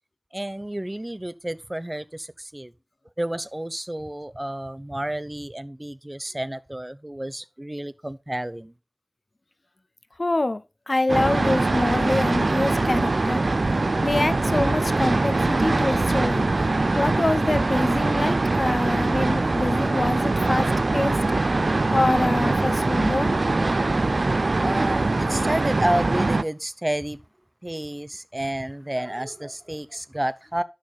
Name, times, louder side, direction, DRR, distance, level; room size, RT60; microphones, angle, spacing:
voice 1, 0.3-2.7 3.2-8.7 24.6-27.2 27.6-30.6, right 1 dB, 25° right, 0.6 m, -30 dB
voice 2, 10.2-13.4 14.0-16.5 16.9-21.2 21.9-23.3, left 2 dB, 60° left, 0.6 m, -25 dB
sound 1, 11.1-26.4, right 2 dB, 85° right, 0.4 m, -22 dB
11.5 x 6.4 x 4.1 m
wide cardioid pair, 45°, 0 cm